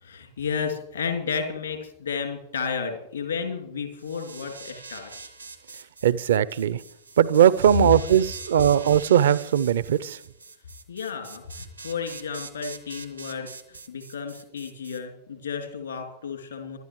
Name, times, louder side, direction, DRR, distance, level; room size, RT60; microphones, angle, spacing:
voice 1, 0.0-5.3 7.7-7.9 10.9-16.8, left 6 dB, 75° left, 5 dB, 2.5 m, -32 dB
sound 1, 4.0-15.0, right 3 dB, 85° right, 1.4 m, -43 dB
voice 2, 6.0-6.8 7.2-10.2, right 9 dB, 60° right, 19 dB, 0.4 m, -19 dB
25.5 x 12.0 x 3.1 m, 0.81 s
figure-of-eight pair, 90°, 0 cm